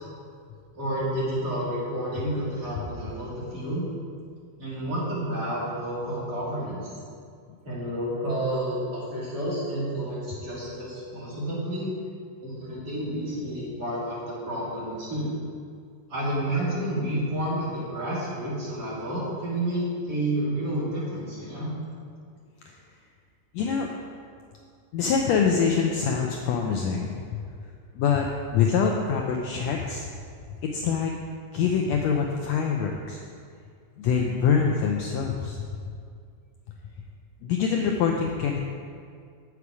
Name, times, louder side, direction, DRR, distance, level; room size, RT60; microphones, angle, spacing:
voice 1, 0.7-3.9 4.6-6.9 7.6-11.9 12.4-15.3 16.1-21.7, right 1 dB, 35° right, -9 dB, 2.6 m, -30 dB
voice 2, 23.5-23.9 24.9-27.4 28.0-28.3 28.5-30.0 30.7-31.1 31.5-33.2 34.0-35.6 37.4-38.6, left 6 dB, 80° left, 1 dB, 1.6 m, -24 dB
8.2 x 7.2 x 4.8 m, 2.2 s
omnidirectional pair, 3.6 m